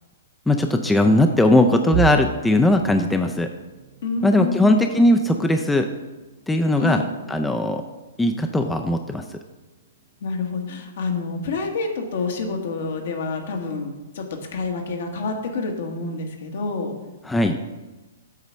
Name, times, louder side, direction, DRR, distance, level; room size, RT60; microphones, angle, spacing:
voice 1, 0.5-3.5 4.2-5.9 6.5-7.0 7.3-7.8 8.2-9.2 17.3-17.6, left 1 dB, 5° left, 5 dB, 0.4 m, -19 dB
sound 1, 1.9-13.8 14.2-14.4 14.8-15.0 15.9-16.3, right 8 dB, 40° right, 0.7 m, -37 dB
voice 2, 4.0-4.9 6.8-7.1 10.2-14.2 14.5-16.9, left 4 dB, 60° left, 3 dB, 1.3 m, -28 dB
8.1 x 4.0 x 5.6 m, 1.1 s
figure-of-eight pair, 115°, 0 cm